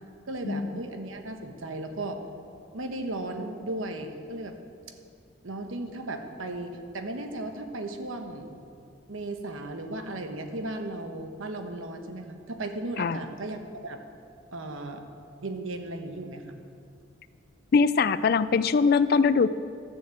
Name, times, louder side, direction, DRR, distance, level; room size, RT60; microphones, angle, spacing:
voice 1, 0.3-2.2 2.7-4.6 5.4-8.6 9.1-14.0 14.5-15.0 15.4-16.5, right 2 dB, 85° right, 6 dB, 1.1 m, -36 dB
voice 2, 17.7-19.5, left 5 dB, 50° left, 15 dB, 0.3 m, -22 dB
12.0 x 7.0 x 7.8 m, 2.3 s
head